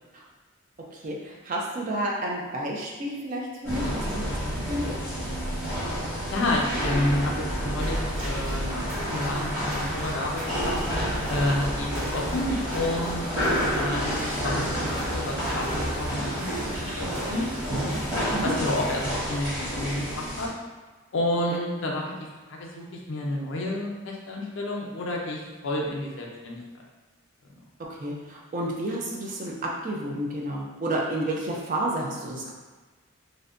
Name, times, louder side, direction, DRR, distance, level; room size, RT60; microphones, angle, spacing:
voice 1, 0.9-5.0 18.3-18.5 21.5-21.6 27.9-29.5 29.8-32.5, right 1 dB, 40° right, -2 dB, 0.4 m, -31 dB
sound 1, 3.6-20.5, equal, 15° right, 0.9 m, -29 dB
voice 2, 6.3-10.7 11.3-13.4 13.7-16.5 17.0-17.5 18.4-20.5 21.1-22.1 22.5-26.6, left 1 dB, 60° left, -1 dB, 0.4 m, -30 dB
sound 2, 7.8-19.1, equal, 65° right, 1.3 m, -40 dB
2.6 x 2.1 x 2.4 m, 1.3 s
head